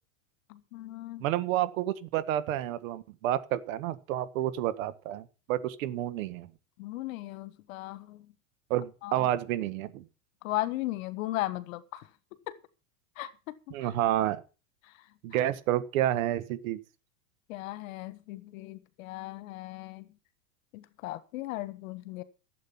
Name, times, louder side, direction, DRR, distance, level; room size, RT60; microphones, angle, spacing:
voice 1, 0.5-1.2 6.8-8.3 9.0-9.3 10.4-12.0 12.5-12.6 13.2-13.7 17.5-20.0 20.7-22.2, left 17 dB, 65° left, 1.5 m, -37 dB
voice 2, 1.2-6.5 8.7-10.0 13.7-14.4 15.2-16.8, right 13 dB, 65° right, 1.5 m, -30 dB
12.5 x 8.0 x 7.1 m
hypercardioid pair, 110°, 44 cm